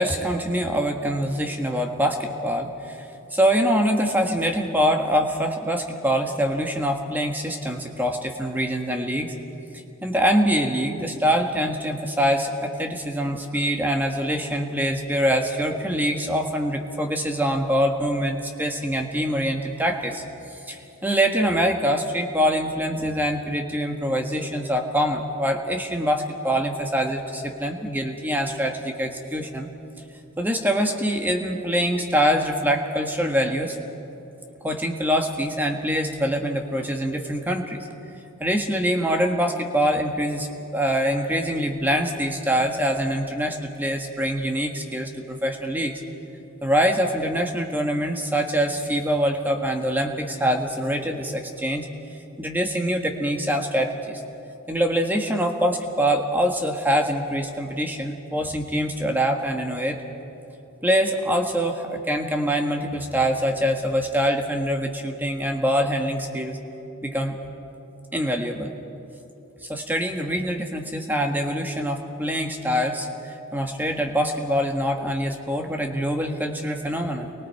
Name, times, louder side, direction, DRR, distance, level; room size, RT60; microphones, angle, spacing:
voice 1, 0.0-9.3 10.0-20.2 20.7-29.7 30.4-33.8 34.6-37.9 38.4-45.9 46.6-51.9 52.4-54.2 54.7-60.0 60.8-66.6 67.0-67.4 68.1-68.7 69.6-77.3, equal, 10° right, 3 dB, 1.5 m, -24 dB
30.0 x 23.5 x 4.7 m, 3.0 s
head